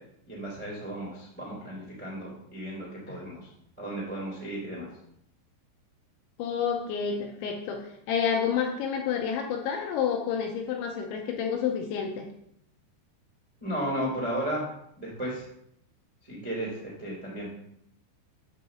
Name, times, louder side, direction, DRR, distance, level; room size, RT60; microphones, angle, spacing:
voice 1, 0.3-3.5 3.8-4.9 13.6-14.6 15.0-15.4 16.2-17.5, right 1 dB, 15° right, -4 dB, 1.3 m, -34 dB
voice 2, 6.4-12.3, left 7 dB, 85° left, 2 dB, 2.8 m, -29 dB
9.2 x 4.0 x 6.9 m, 0.75 s
omnidirectional pair, 5.8 m